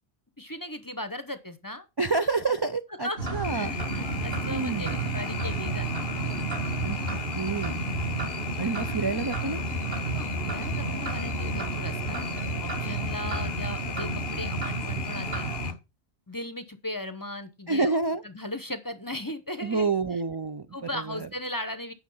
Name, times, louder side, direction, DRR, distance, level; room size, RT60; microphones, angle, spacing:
voice 1, 0.4-1.9 3.0-3.2 3.5-5.9 10.2-12.2 12.6-15.5 16.3-18.0 18.2-19.9 20.7-21.9, left 1 dB, 20° left, 0.7 m, -37 dB
voice 2, 2.0-3.7 4.5-5.1 6.8-7.0 7.3-7.8 8.6-9.6 17.7-18.2 19.6-20.7 20.9-21.3, right 4 dB, 35° right, 0.4 m, -28 dB
sound 1, 3.2-15.7, right 2 dB, 50° right, 2.3 m, -31 dB
sound 2, 3.4-15.7, left 10 dB, 55° left, 0.7 m, -38 dB
9.1 x 6.2 x 5.5 m
omnidirectional pair, 1.2 m